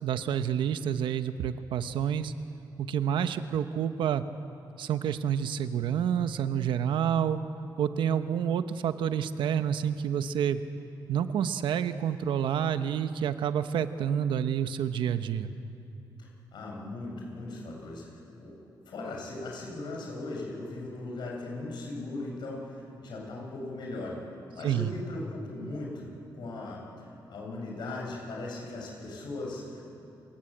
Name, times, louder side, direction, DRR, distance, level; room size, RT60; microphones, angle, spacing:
voice 1, 0.0-2.3 2.8-4.2 4.8-7.4 7.8-10.6 11.1-15.5 24.6-24.9, right 9 dB, 85° right, 10 dB, 1.0 m, -28 dB
voice 2, 16.2-18.1 18.4-18.5 18.9-24.2 24.5-30.0, left 2 dB, 65° left, -1 dB, 7.6 m, -38 dB
29.0 x 18.0 x 8.8 m, 2.8 s
cardioid pair, 115°, 8 cm